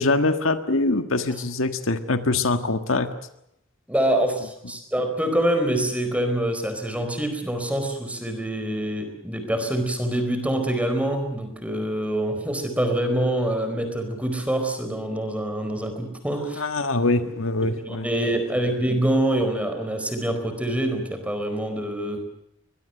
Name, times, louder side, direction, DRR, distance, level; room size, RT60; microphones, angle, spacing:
voice 1, 0.0-3.1 16.6-18.1, left 2 dB, 80° left, 8 dB, 1.6 m, -23 dB
voice 2, 3.9-16.6 17.2-17.3 17.6-22.3, right 1 dB, 5° right, 6 dB, 4.5 m, -25 dB
23.0 x 21.0 x 7.8 m, 0.76 s
head